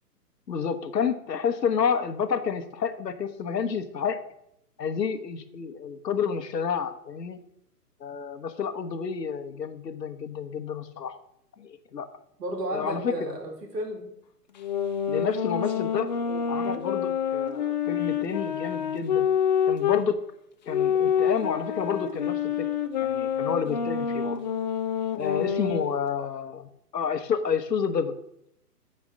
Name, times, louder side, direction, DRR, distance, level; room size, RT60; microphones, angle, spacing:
voice 1, 0.5-4.2 4.8-7.4 8.0-11.2 11.6-12.1 12.7-13.3 15.1-16.1 16.5-19.3 19.7-20.3 20.7-22.7 23.0-24.4 25.1-28.2, left 6 dB, 85° left, 10 dB, 1.1 m, -30 dB
voice 2, 12.4-14.1 15.7-15.9 16.2-16.7 25.3-25.5, right 1 dB, 75° right, 2 dB, 2.8 m, -34 dB
sound 1, 14.6-20.1 20.7-25.9, left 8 dB, 30° left, 0.5 m, -27 dB
7.6 x 4.6 x 6.4 m, 0.76 s
hypercardioid pair, 135°, 48 cm